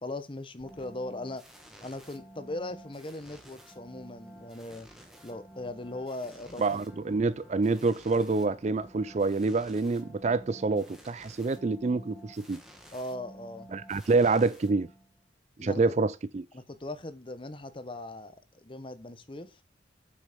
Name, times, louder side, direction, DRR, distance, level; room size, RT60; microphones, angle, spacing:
voice 1, 0.0-1.4 1.8-4.9 5.2-6.6 12.9-13.7 15.6-15.8 16.5-19.6, left 2 dB, 30° left, 0.9 m, -39 dB
sound 1, 0.6-15.2, right 1 dB, ahead, 1.9 m, -52 dB
voice 2, 6.6-12.6 13.7-14.9 15.6-16.4, right 3 dB, 35° right, 0.4 m, -27 dB
7.8 x 6.2 x 6.7 m
head